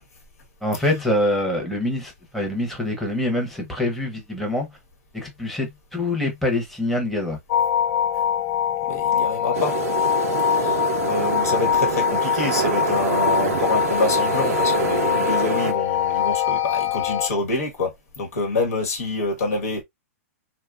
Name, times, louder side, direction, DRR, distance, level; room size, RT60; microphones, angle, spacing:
voice 1, 0.6-4.7 5.1-7.4 10.7-11.1, left 1 dB, ahead, 0.8 m, -25 dB
sound 1, 7.5-17.3, left 9 dB, 50° left, 0.5 m, -23 dB
voice 2, 8.9-9.7 10.5-19.8, left 3 dB, 80° left, 1.3 m, -26 dB
sound 2, 9.5-15.7, right 9 dB, 70° right, 0.4 m, -26 dB
2.7 x 2.3 x 2.4 m
hypercardioid pair, 130°, 8 cm